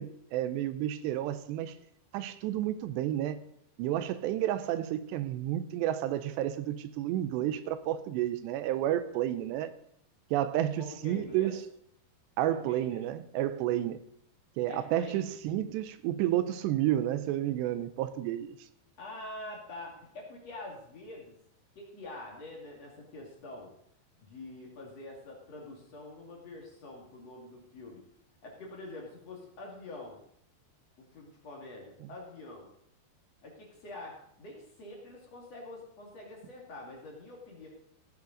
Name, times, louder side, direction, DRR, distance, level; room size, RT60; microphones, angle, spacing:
voice 1, 0.0-1.8 2.1-3.4 3.8-9.7 10.3-11.6 12.4-14.0 14.6-18.6 32.0-32.1, right 12 dB, 90° right, 12 dB, 2.8 m, -31 dB
voice 2, 10.8-11.5 12.5-13.0 14.7-15.2 19.0-21.4 21.8-23.7 24.2-28.0 28.4-30.2 31.0-32.7 33.4-37.7, left 2 dB, 45° left, -2 dB, 2.9 m, -46 dB
16.5 x 8.4 x 3.9 m, 0.70 s
omnidirectional pair, 4.9 m